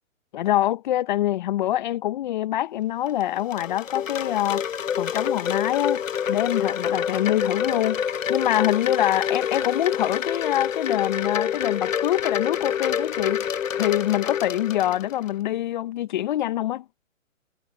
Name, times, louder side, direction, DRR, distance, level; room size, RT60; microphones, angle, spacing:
voice 1, 0.3-4.6 5.0-6.0 6.3-8.0 8.3-13.4 13.8-16.8, left 13 dB, 35° left, 1.0 m, -25 dB
Wind chime, 3.1-15.3, left 8 dB, 80° left, 0.9 m, -27 dB
hypercardioid pair, 140°, 39 cm